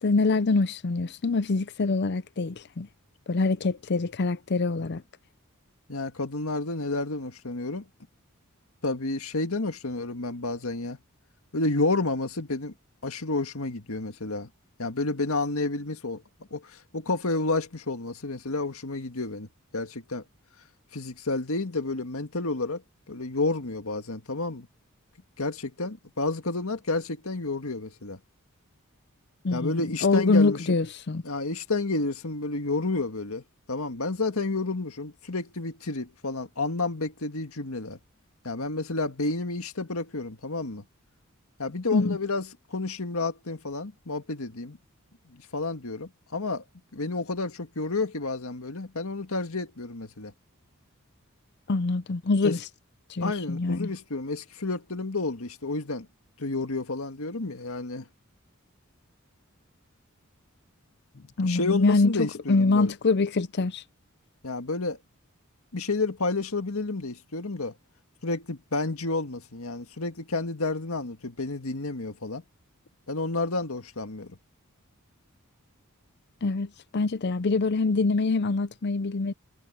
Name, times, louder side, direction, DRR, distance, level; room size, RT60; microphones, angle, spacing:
voice 1, 0.0-2.9 3.3-5.0 29.4-31.2 41.9-42.2 51.7-52.6 53.1-53.9 61.4-63.8 76.4-79.3, left 3 dB, 50° left, 0.6 m, -25 dB
voice 2, 5.9-7.9 8.8-11.0 11.5-12.7 13.0-14.5 14.8-16.2 16.5-19.5 19.7-20.2 20.9-22.8 23.1-24.7 25.4-28.2 29.5-30.6 31.2-38.0 38.4-40.8 41.6-42.5 42.7-44.8 45.5-46.6 46.9-50.3 52.4-52.5 53.2-56.1 56.4-58.0 61.4-62.9 64.4-65.0 65.7-67.7 68.2-72.4 73.1-74.3, left 3 dB, 80° left, 1.9 m, -30 dB
head